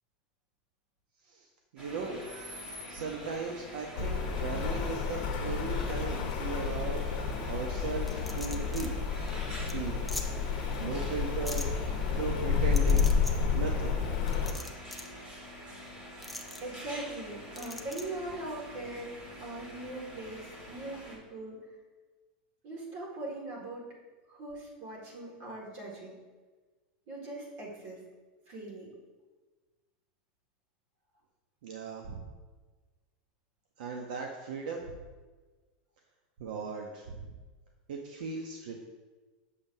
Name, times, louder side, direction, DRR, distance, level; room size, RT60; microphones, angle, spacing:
voice 1, 1.7-2.2 2.9-7.0 7.5-8.9 9.6-10.0 10.8-11.7 12.2-13.1 13.5-13.9 31.6-32.2 33.8-35.0 36.4-37.3 37.9-38.7, right 5 dB, 80° right, 1 dB, 0.7 m, -37 dB
sound 1, 1.8-21.2, equal, 30° right, 1.7 m, -46 dB
Rain, 3.9-14.5, left 6 dB, 55° left, 1.0 m, -30 dB
sound 2, 8.1-8.9 9.3-9.4 9.7-9.8 10.1-10.2 11.4-11.6 12.7-13.3 14.3-15.1 16.2-16.6 17.5-18.0, left 1 dB, ahead, 0.5 m, -41 dB
voice 2, 16.6-19.1 19.4-21.7 22.6-23.9 24.3-26.2 27.1-28.0 28.5-28.9, right 2 dB, 50° right, -3 dB, 2.0 m, -41 dB
7.1 x 6.7 x 2.7 m, 1.3 s
supercardioid pair, 160°, 5 cm